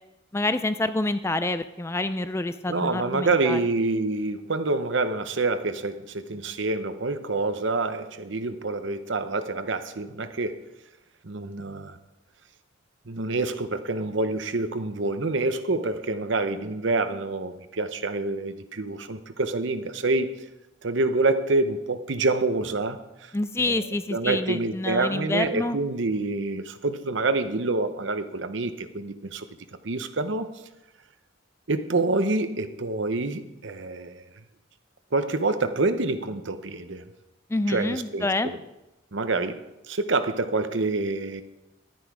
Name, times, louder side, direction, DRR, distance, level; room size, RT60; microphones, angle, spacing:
voice 1, 0.3-3.6 23.3-25.8 37.5-38.5, left 2 dB, 15° left, 12 dB, 0.3 m, -27 dB
voice 2, 2.7-10.6 11.2-12.0 13.1-20.3 20.8-23.3 23.7-23.8 24.1-29.5 29.8-30.5 31.7-34.2 35.1-37.1 37.7-38.6 39.1-41.4, right 3 dB, 65° right, 10 dB, 0.8 m, -27 dB
11.0 x 10.5 x 4.8 m, 0.95 s
head